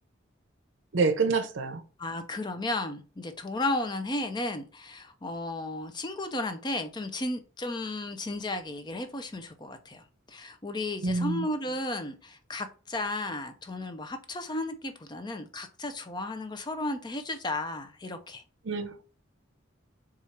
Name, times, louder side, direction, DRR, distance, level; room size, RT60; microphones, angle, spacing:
voice 1, 0.9-1.8 11.0-11.5 18.6-19.0, right 4 dB, 70° right, 0.6 m, -27 dB
voice 2, 2.0-18.4, left 2 dB, 20° left, 0.5 m, -34 dB
4.4 x 2.4 x 4.3 m
head